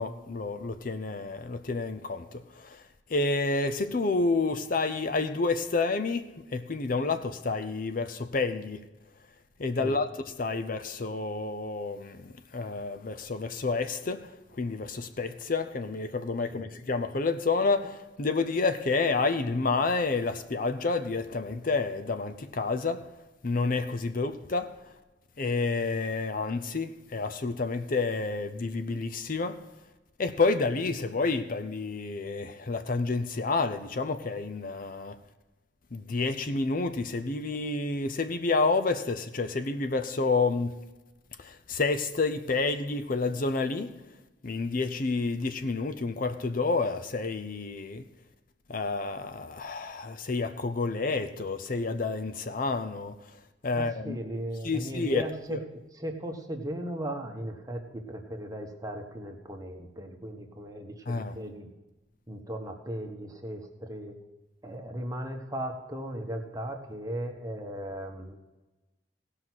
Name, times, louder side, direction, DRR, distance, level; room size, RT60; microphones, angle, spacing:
voice 1, 0.0-2.8 3.1-8.8 9.6-10.1 10.4-12.3 12.5-23.1 23.4-24.7 25.4-29.6 30.2-35.2 35.9-40.7 41.4-43.9 44.4-48.0 48.7-53.1 53.6-54.2 54.6-55.6 61.1-61.3, left 3 dB, 50° left, 0.6 m, -29 dB
voice 2, 53.7-61.7 62.3-64.2 64.6-68.6, right 1 dB, 20° right, 1.4 m, -37 dB
17.0 x 5.8 x 6.2 m
head